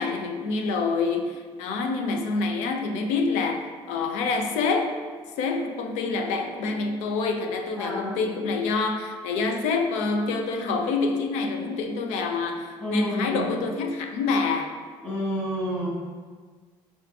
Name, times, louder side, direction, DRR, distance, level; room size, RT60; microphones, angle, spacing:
voice 1, 0.0-3.6 3.9-4.9 5.4-14.7, left 4 dB, 90° left, 4 dB, 0.4 m, -26 dB
voice 2, 7.8-8.2 12.8-13.4 15.0-15.9, equal, 15° left, -7 dB, 1.5 m, -29 dB
5.7 x 2.5 x 2.3 m, 1.5 s
cardioid pair, 110°, 11 cm